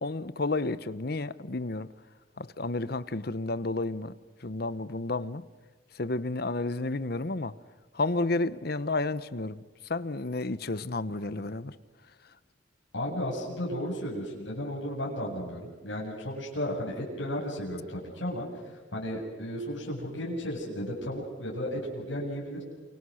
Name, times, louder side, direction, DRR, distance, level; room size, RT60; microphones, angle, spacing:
voice 1, 0.0-1.9 2.4-4.1 4.4-5.4 5.9-7.5 7.9-9.6 9.9-11.7, left 2 dB, 55° left, 0.9 m, -31 dB
voice 2, 12.9-18.5 18.9-22.6, equal, 75° left, 7.8 m, -34 dB
29.0 x 28.0 x 6.5 m
head